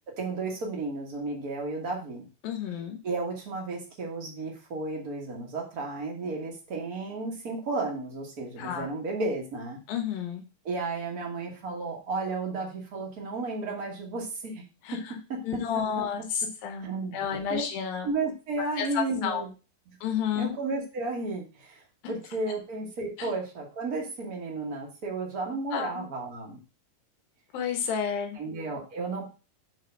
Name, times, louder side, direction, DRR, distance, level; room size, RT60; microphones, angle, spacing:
voice 1, 0.2-2.3 3.0-9.8 10.6-14.6 14.9-15.8 16.8-17.6 18.0-19.5 19.9-20.0 20.3-26.6 28.3-29.3, right 3 dB, 45° right, 0 dB, 1.2 m, -33 dB
voice 2, 2.4-3.0 8.6-8.9 9.9-10.4 14.8-15.0 15.4-18.1 18.8-19.4 20.0-20.5 23.2-23.3 25.7-26.0 27.5-28.4, left 8 dB, 80° left, 3 dB, 2.7 m, -31 dB
7.2 x 3.3 x 5.2 m, 0.32 s
omnidirectional pair, 4.2 m